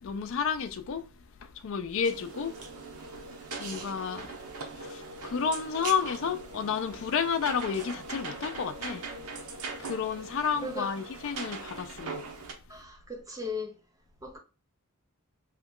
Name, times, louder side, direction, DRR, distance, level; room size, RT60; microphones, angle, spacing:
voice 1, 0.0-1.1 1.4-2.6 3.6-4.3 4.8-9.1 9.8-12.2, left 6 dB, 60° left, 0.4 m, -31 dB
sound 1, 2.0-12.5, right 3 dB, 90° right, 0.7 m, -41 dB
voice 2, 12.7-13.8 14.2-14.4, left 2 dB, 15° right, 0.5 m, -37 dB
3.0 x 2.2 x 3.6 m
head